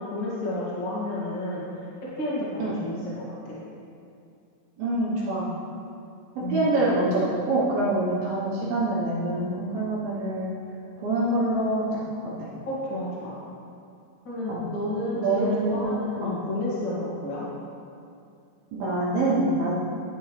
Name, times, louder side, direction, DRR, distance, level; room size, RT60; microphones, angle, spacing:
voice 1, 0.1-1.9 2.2-3.6 6.4-6.7 12.6-13.4 14.2-17.4, left 1 dB, 60° left, -7 dB, 1.1 m, -31 dB
voice 2, 4.8-5.5 6.5-10.5 11.0-12.0 12.4-12.5 14.5-14.6 15.1-15.8 16.2-16.4 18.7-19.8, right 2 dB, 70° right, -6 dB, 2.4 m, -25 dB
11.0 x 7.1 x 3.2 m, 2.5 s
omnidirectional pair, 5.4 m